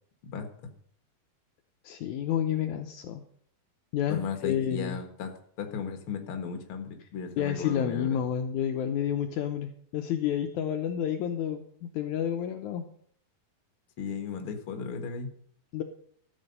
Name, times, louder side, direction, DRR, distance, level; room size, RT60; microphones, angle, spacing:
voice 1, 1.8-3.2 3.9-5.0 7.4-12.8 15.7-15.8, left 9 dB, 85° left, 5 dB, 1.7 m, -30 dB
voice 2, 4.1-5.3 5.6-8.2 14.0-15.3, left 6 dB, 50° left, 6 dB, 1.6 m, -35 dB
13.5 x 7.8 x 5.4 m, 0.63 s
omnidirectional pair, 4.5 m